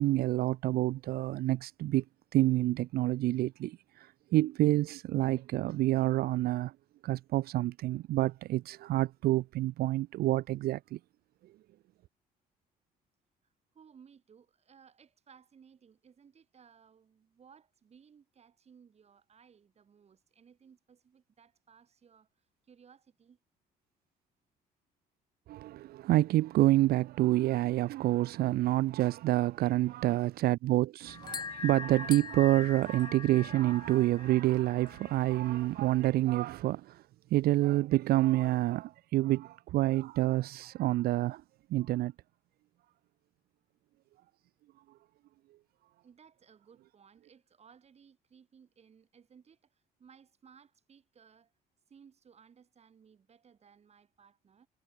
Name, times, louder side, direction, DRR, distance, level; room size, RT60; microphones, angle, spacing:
voice 1, 0.0-2.0 2.3-6.7 7.0-11.0 25.5-37.0 37.3-41.4 41.7-42.1, right 16 dB, 65° right, 0.5 m, -28 dB
voice 2, 13.7-22.3 22.6-23.4 29.6-30.0 46.0-49.6 50.0-51.5 51.9-54.7, right 7 dB, 40° right, 6.0 m, -60 dB
sound 1, 31.1-36.1, left 6 dB, 25° left, 0.6 m, -43 dB
cardioid pair, 110°, 17 cm